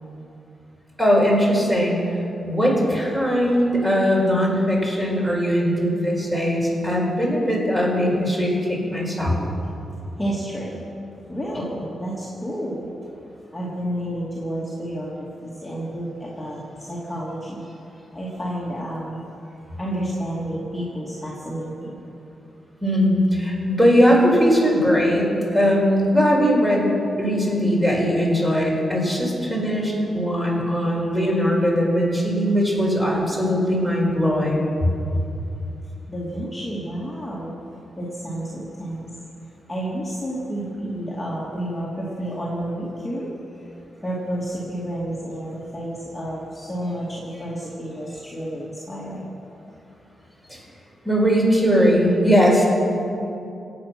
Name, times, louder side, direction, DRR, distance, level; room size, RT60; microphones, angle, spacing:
voice 1, 1.0-2.2 2.4-9.4 22.8-26.9 27.2-34.7 50.5-50.6 51.0-52.7, equal, 10° right, -3 dB, 4.6 m, -20 dB
voice 2, 10.2-10.8 11.3-12.9 13.5-19.5 19.8-22.0 36.1-37.5 38.0-39.1 39.7-43.6 44.0-49.3, right 1 dB, 10° left, -7 dB, 2.4 m, -30 dB
25.5 x 8.7 x 6.0 m, 2.8 s
wide cardioid pair, 130°, 0 cm